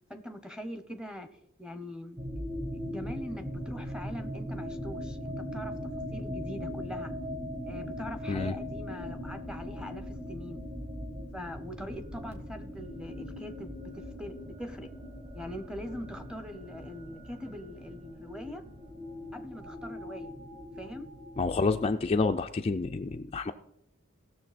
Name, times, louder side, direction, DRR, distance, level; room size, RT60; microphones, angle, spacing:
voice 1, 0.1-1.3 1.6-2.2 2.8-5.7 6.1-7.1 7.6-10.6 11.3-13.9 14.2-14.9 15.3-18.6 19.3-20.3 20.8-21.1, equal, 5° right, 9 dB, 0.8 m, -42 dB
sound 1, 2.2-22.0, equal, 30° right, 2.2 m, -40 dB
voice 2, 21.4-23.5, left 4 dB, 30° left, 6 dB, 0.4 m, -28 dB
17.0 x 6.7 x 4.1 m, 0.77 s
head